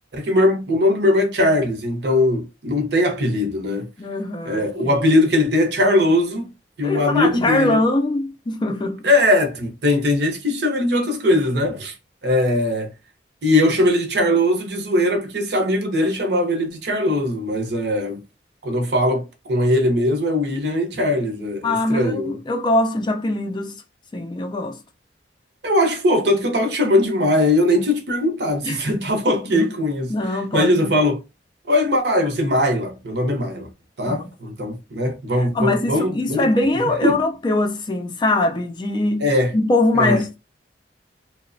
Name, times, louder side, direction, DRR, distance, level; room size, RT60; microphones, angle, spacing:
voice 1, 0.1-3.9 4.4-6.5 6.8-7.8 9.0-11.9 12.2-12.9 13.4-18.2 18.6-22.4 25.6-30.1 30.5-31.2 31.7-33.7 34.0-36.5 37.0-37.2 39.2-39.5 39.9-40.2, left 1 dB, 65° right, 0.7 m, -20 dB
voice 2, 4.0-4.9 6.8-9.1 21.6-23.8 24.1-24.8 28.6-29.0 29.5-29.7 30.1-30.9 34.1-34.3 35.5-39.2 39.5-40.4, left 2 dB, 25° left, 0.3 m, -22 dB
2.9 x 2.0 x 2.5 m
head